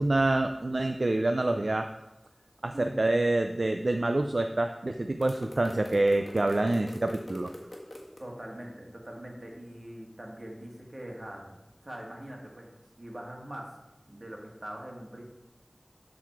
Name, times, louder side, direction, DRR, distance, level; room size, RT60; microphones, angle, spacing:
voice 1, 0.0-1.9 2.6-7.5, right 2 dB, 75° right, 6 dB, 0.4 m, -27 dB
sound 1, 5.2-8.2, left 1 dB, 50° left, 1.5 m, -44 dB
voice 2, 8.2-11.5 11.8-12.7 13.0-13.8 14.1-15.3, right 1 dB, 55° right, 0 dB, 1.9 m, -42 dB
12.0 x 4.1 x 4.6 m, 0.96 s
wide cardioid pair, 50°, 0 cm